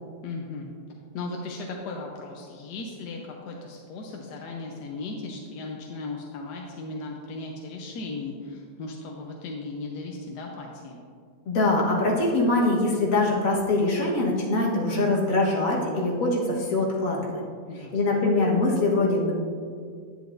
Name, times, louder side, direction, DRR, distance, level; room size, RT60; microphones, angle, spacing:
voice 1, 0.2-0.7 1.1-11.0 17.7-18.3, left 3 dB, 70° left, 0 dB, 1.3 m, -37 dB
voice 2, 11.4-17.2 17.9-19.3, left 2 dB, 50° left, -3 dB, 1.7 m, -23 dB
9.7 x 8.2 x 2.6 m, 2.1 s
omnidirectional pair, 1.9 m